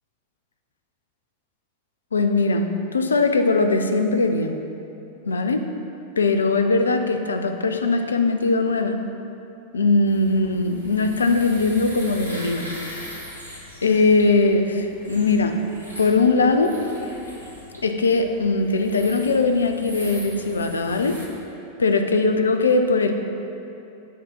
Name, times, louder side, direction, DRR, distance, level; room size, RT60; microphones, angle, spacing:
voice 1, 2.1-4.6 5.3-5.6 6.2-9.0 9.7-12.7 13.8-15.6 16.0-16.7 17.8-21.1 21.8-23.1, left 3 dB, 75° left, 6 dB, 0.5 m, -20 dB
sound 1, 10.1-21.3, equal, 85° right, 1.3 m, -40 dB
9.5 x 4.2 x 5.5 m, 2.8 s
figure-of-eight pair, 90°, 0 cm